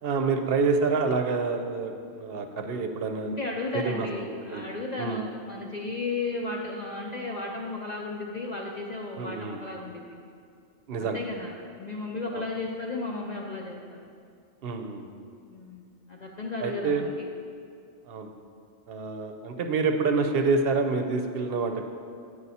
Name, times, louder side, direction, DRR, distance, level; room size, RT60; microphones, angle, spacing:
voice 1, 0.0-3.3 3.7-4.2 4.5-4.6 5.0-5.2 9.1-9.6 10.9-11.2 12.3-12.4 14.6-15.0 16.6-17.0 18.1-18.3 18.9-21.8, right 4 dB, 60° right, 5 dB, 0.8 m, -27 dB
voice 2, 3.3-10.0 11.0-14.0 15.5-17.3, left 3 dB, 50° left, -1 dB, 0.5 m, -34 dB
9.3 x 5.3 x 4.1 m, 2.4 s
omnidirectional pair, 1.2 m